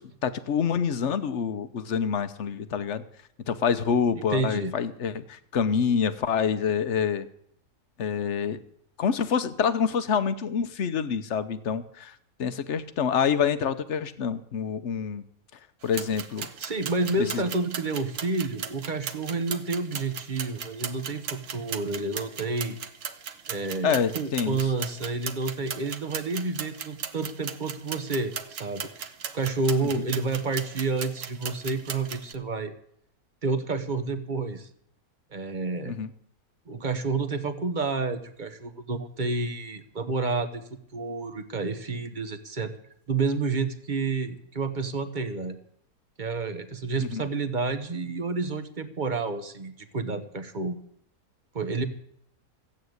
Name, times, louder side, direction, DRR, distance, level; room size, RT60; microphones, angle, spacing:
voice 1, 0.0-3.0 3.5-7.3 8.0-8.6 9.0-15.2 15.8-16.5 17.3-17.4 23.8-24.6 29.8-29.9 35.9-36.1 47.0-47.2, left 7 dB, 55° left, 12 dB, 1.1 m, -27 dB
voice 2, 4.3-4.7 16.6-22.8 23.5-28.9 29.3-32.7 33.4-34.7 35.3-35.9 36.7-42.7 43.1-45.6 46.2-50.8 51.5-51.8, right 3 dB, 35° right, 9 dB, 1.1 m, -29 dB
sound 1, 15.8-32.3, right 7 dB, 60° right, 1.2 m, -37 dB
15.0 x 8.8 x 7.9 m, 0.69 s
omnidirectional pair, 1.6 m